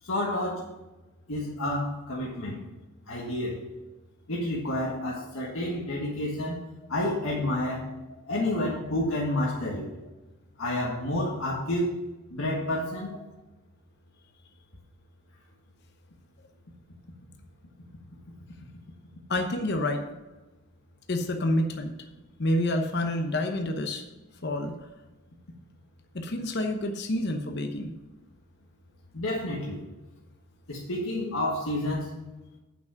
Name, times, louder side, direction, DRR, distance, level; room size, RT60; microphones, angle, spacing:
voice 1, 0.0-0.7 1.3-2.6 3.1-3.7 4.3-6.6 6.9-7.9 8.3-9.9 10.6-12.0 12.3-13.1 29.1-29.8 30.7-32.2, left 1 dB, 80° left, -4 dB, 1.6 m, -29 dB
voice 2, 19.3-20.1 21.1-21.9 22.4-24.0 24.4-24.7 26.1-27.9, left 1 dB, 50° left, 5 dB, 0.9 m, -28 dB
8.4 x 5.9 x 5.8 m, 1.1 s
head